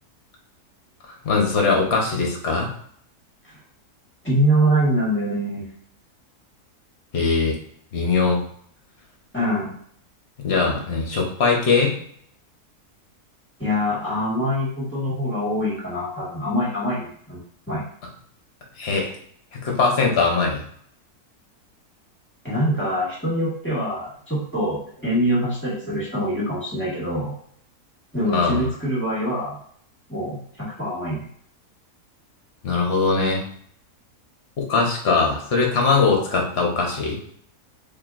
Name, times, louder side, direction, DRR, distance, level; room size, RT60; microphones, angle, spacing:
voice 1, 1.2-2.7 7.1-7.6 7.9-8.4 10.4-12.0 18.8-19.1 19.5-20.6 28.3-28.7 32.6-33.4 34.6-37.2, left 4 dB, 45° left, 0 dB, 1.1 m, -21 dB
voice 2, 4.2-5.6 9.3-9.7 13.6-17.4 17.7-17.8 22.4-27.3 28.1-29.5 30.1-31.3, equal, 10° left, -7 dB, 1.5 m, -24 dB
4.3 x 3.2 x 2.5 m, 0.63 s
omnidirectional pair, 1.7 m